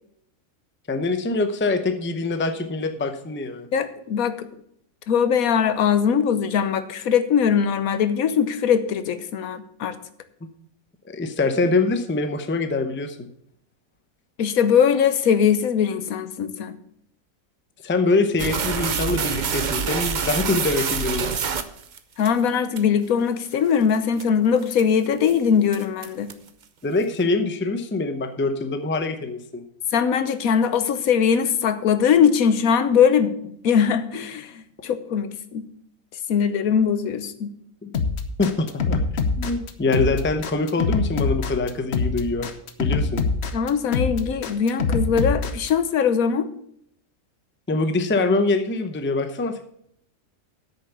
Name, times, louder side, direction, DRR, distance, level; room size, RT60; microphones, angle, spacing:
voice 1, 0.9-3.7 11.1-13.3 17.8-21.3 26.8-29.6 37.8-37.9 38.4-39.0 39.4-42.5 42.8-43.2 47.7-49.6, left 3 dB, 15° left, 8 dB, 0.5 m, -24 dB
voice 2, 3.7-4.4 5.1-10.0 14.4-16.8 22.2-26.3 29.9-33.3 33.6-34.5 34.8-35.7 36.3-37.5 43.5-46.5, left 7 dB, 80° left, 12 dB, 1.3 m, -21 dB
sound 1, 18.4-22.3 22.8-22.9 23.4-23.5 23.9-24.2 24.7-25.0 25.3-25.4 25.7-26.5, right 6 dB, 45° right, 0.6 m, -26 dB
sound 2, 37.9-45.7, left 4 dB, 55° left, 1.0 m, -24 dB
8.5 x 6.8 x 7.0 m, 0.70 s
omnidirectional pair, 1.5 m